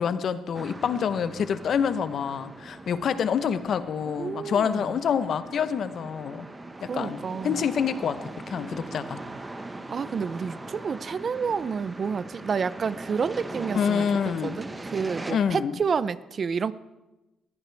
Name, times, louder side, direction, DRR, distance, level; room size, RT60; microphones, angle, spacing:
voice 1, 0.0-6.5 6.8-8.2 8.5-9.2 13.7-14.6 15.3-15.7, left 7 dB, 60° left, 12 dB, 0.9 m, -27 dB
sound 1, 0.5-15.3, right 2 dB, 20° right, 1.3 m, -40 dB
voice 2, 4.1-4.9 6.8-7.6 9.9-16.7, right 6 dB, 45° right, 17 dB, 0.6 m, -30 dB
20.5 x 14.5 x 3.5 m, 1.0 s
cardioid pair, 90°, 0 cm